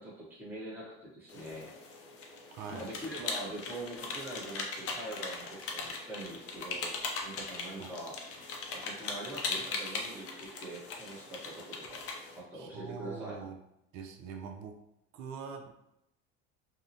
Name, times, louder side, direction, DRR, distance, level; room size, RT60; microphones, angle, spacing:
voice 1, 0.0-1.7 2.7-8.2 8.7-12.1 12.4-13.4, right 1 dB, 5° right, -7 dB, 0.8 m, -43 dB
sound 1, 1.3-12.4, left 4 dB, 50° left, 0.6 m, -40 dB
voice 2, 2.5-2.9 7.8-7.9 12.5-13.6 13.9-14.8 15.1-15.7, right 6 dB, 60° right, 4 dB, 0.5 m, -43 dB
2.7 x 2.0 x 2.6 m, 0.83 s
supercardioid pair, 105°, 31 cm